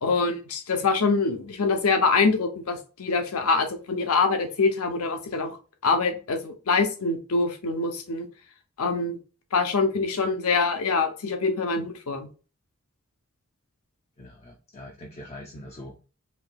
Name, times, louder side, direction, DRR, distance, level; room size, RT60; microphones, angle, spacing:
voice 1, 0.0-5.6 5.8-8.3 8.8-9.2 9.5-12.3, left 4 dB, 85° left, 6 dB, 0.7 m, -24 dB
voice 2, 14.2-16.0, left 1 dB, 30° left, 1 dB, 0.4 m, -43 dB
4.4 x 2.7 x 2.2 m, 0.35 s
head